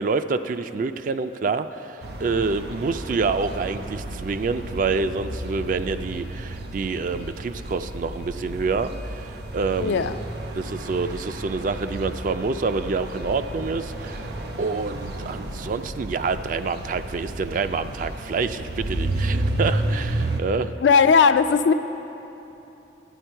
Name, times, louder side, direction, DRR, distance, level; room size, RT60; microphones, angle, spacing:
voice 1, 0.0-10.1 10.6-14.2 14.6-20.7, right 4 dB, 45° right, 11 dB, 0.3 m, -27 dB
sound 1, 2.0-20.4, right 1 dB, 65° right, 0.8 m, -32 dB
voice 2, 9.8-10.2 20.8-21.7, left 5 dB, 85° left, 11 dB, 0.4 m, -17 dB
11.0 x 10.0 x 4.5 m, 3.0 s
head